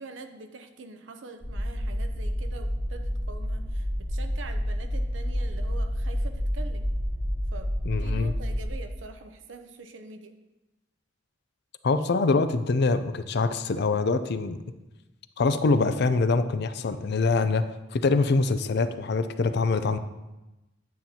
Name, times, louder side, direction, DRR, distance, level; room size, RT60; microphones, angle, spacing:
voice 1, 0.0-6.8 7.5-10.3, right 3 dB, 80° right, 7 dB, 0.7 m, -44 dB
sound 1, 1.4-8.7, equal, 15° left, 1.5 m, -29 dB
voice 2, 7.9-8.3 11.8-14.6 15.4-17.6 17.9-20.0, left 3 dB, 60° left, 11 dB, 0.5 m, -24 dB
9.3 x 7.7 x 2.9 m, 1.0 s
head